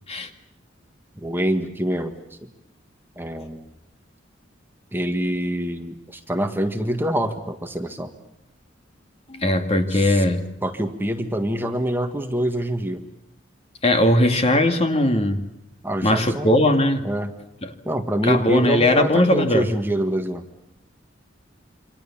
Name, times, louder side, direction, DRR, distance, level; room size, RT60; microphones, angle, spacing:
voice 1, 1.2-2.1 3.2-3.6 4.9-8.1 9.9-10.2 10.6-13.0 15.8-16.6 17.0-17.3 17.8-20.4, right 1 dB, 10° right, 5 dB, 1.7 m, -25 dB
voice 2, 9.3-10.4 13.8-15.5 16.0-17.0 17.6-17.7 18.2-19.7, left 1 dB, 35° left, 6 dB, 2.2 m, -19 dB
28.5 x 25.5 x 7.3 m, 0.82 s
head